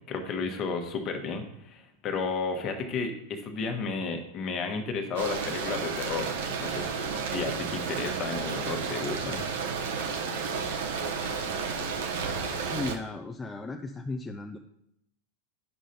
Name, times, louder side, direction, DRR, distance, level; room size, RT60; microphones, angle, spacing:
voice 1, 0.1-6.3 6.6-9.4, left 4 dB, 35° left, 6 dB, 1.1 m, -33 dB
sound 1, 5.1-13.0, right 5 dB, 55° right, 0.8 m, -32 dB
voice 2, 12.6-14.6, left 3 dB, 10° left, 3 dB, 0.4 m, -36 dB
9.8 x 6.2 x 2.8 m, 0.81 s
figure-of-eight pair, 90°, 0 cm